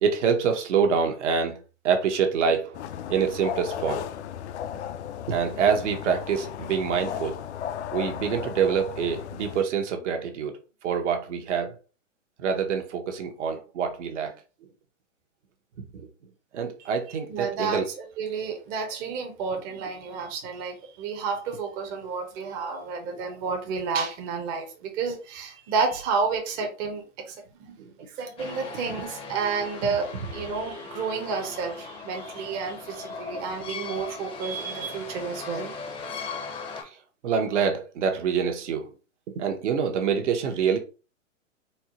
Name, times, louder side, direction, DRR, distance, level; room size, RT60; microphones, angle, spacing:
voice 1, 0.0-2.8 3.1-4.0 5.3-7.4 7.9-10.6 10.8-11.7 12.4-14.3 15.9-16.1 16.5-17.9 27.8-27.9 28.9-29.0 33.3-33.4 36.8-36.9 37.2-38.9 39.3-40.8, right 6 dB, 60° right, 0.9 m, -26 dB
sound 1, 2.7-9.6, left 9 dB, 60° left, 0.5 m, -35 dB
voice 2, 17.3-17.8 18.2-27.8 28.2-35.7, right 5 dB, 25° right, 0.7 m, -31 dB
sound 2, 28.4-36.8, left 4 dB, 15° left, 0.6 m, -38 dB
4.2 x 2.1 x 2.9 m
hypercardioid pair, 130°, 40 cm